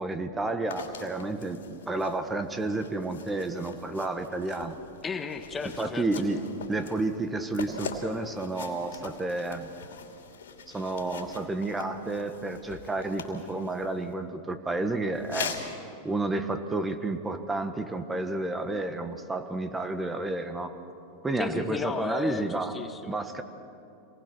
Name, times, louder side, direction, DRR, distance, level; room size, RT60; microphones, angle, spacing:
voice 1, 0.0-4.8 5.8-6.4 6.7-9.7 10.7-15.6 16.0-20.7 21.2-22.7 23.1-23.4, right 2 dB, 15° right, 8 dB, 1.4 m, -31 dB
sound 1, 0.7-14.1 15.1-15.7, left 5 dB, 80° left, 2.9 m, -42 dB
voice 2, 5.0-6.1 21.4-23.2, left 5 dB, 20° left, 8 dB, 1.4 m, -34 dB
26.0 x 20.0 x 6.2 m, 2.7 s
hypercardioid pair, 105°, 0 cm